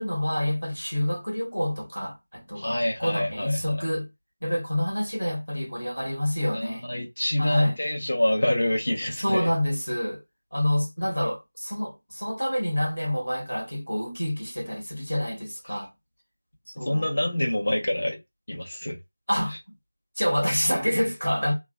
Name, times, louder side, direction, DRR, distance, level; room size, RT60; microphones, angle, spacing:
voice 1, 0.0-4.1 4.4-6.9 7.4-7.8 9.2-10.2 10.5-15.9 16.7-17.1 19.3-19.6 20.2-21.5, equal, 90° left, 1.2 m, -27 dB
voice 2, 2.6-3.8 6.5-9.5 15.7-15.8 16.7-18.2 18.5-19.0 19.5-19.6, left 1 dB, 45° left, 1.0 m, -26 dB
3.2 x 2.1 x 2.3 m
figure-of-eight pair, 170°, 0 cm